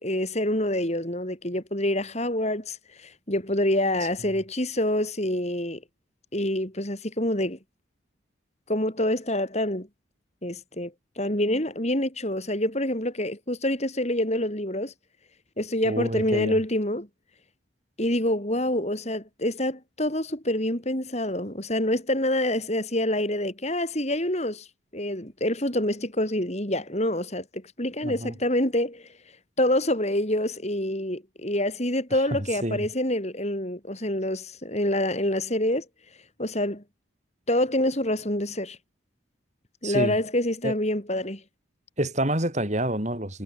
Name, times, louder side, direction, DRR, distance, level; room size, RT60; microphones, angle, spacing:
voice 1, 0.0-5.8 6.3-7.6 8.7-9.9 10.4-14.9 15.6-17.1 18.0-24.7 24.9-29.1 29.6-35.9 36.4-36.8 37.5-38.8 39.8-41.4, left 1 dB, 35° left, 4.2 m, -26 dB
voice 2, 15.8-16.5 28.0-28.3 32.6-32.9 39.8-40.2 40.6-40.7 42.0-43.4, right 1 dB, 35° right, 6.3 m, -27 dB
head